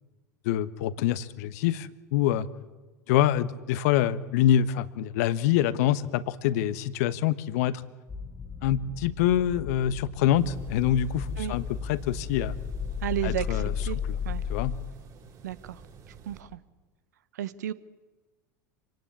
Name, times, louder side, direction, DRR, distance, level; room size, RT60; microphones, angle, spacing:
voice 1, 0.4-2.5 3.1-7.8 8.6-12.6 13.2-14.2 14.5-14.7, left 11 dB, 60° left, 15 dB, 1.1 m, -26 dB
sound 1, 8.1-14.7, left 6 dB, 25° left, 1.8 m, -34 dB
sound 2, 10.3-16.4, right 5 dB, 40° right, 6.2 m, -50 dB
voice 2, 13.0-14.0 14.2-14.4 15.4-15.8 16.3-16.6 17.4-17.7, right 11 dB, 70° right, 17 dB, 1.0 m, -32 dB
26.5 x 18.5 x 8.5 m, 1.3 s
figure-of-eight pair, 80°, 10 cm